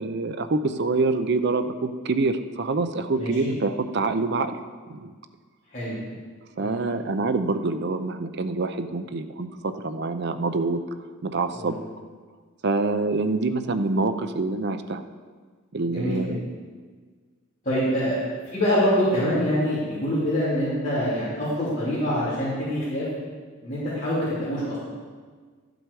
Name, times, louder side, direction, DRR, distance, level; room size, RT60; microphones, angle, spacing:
voice 1, 0.0-4.6 4.9-5.1 6.6-10.8 11.2-11.8 12.6-15.0 15.7-16.4, right 3 dB, 50° right, 9 dB, 0.6 m, -26 dB
voice 2, 3.1-3.5 5.7-6.0 6.6-7.0 11.5-11.7 15.9-16.2 17.6-23.0 23.6-25.0, equal, 35° left, -12 dB, 3.2 m, -25 dB
12.5 x 7.8 x 4.8 m, 1.5 s
head